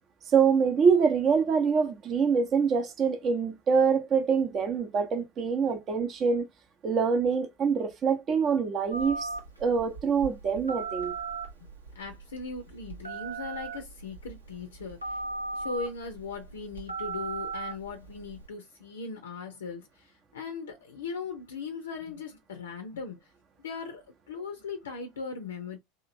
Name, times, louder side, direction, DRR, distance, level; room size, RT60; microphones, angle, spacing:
voice 1, 0.3-6.5 6.8-9.3 9.6-11.1, right 6 dB, 35° right, 0.7 m, -25 dB
Telephone, 8.9-18.5, right 4 dB, 90° right, 0.7 m, -38 dB
voice 2, 11.9-15.2 15.5-23.3 23.6-25.8, left 4 dB, 70° left, 0.5 m, -39 dB
2.9 x 2.4 x 2.6 m
figure-of-eight pair, 80°, 0 cm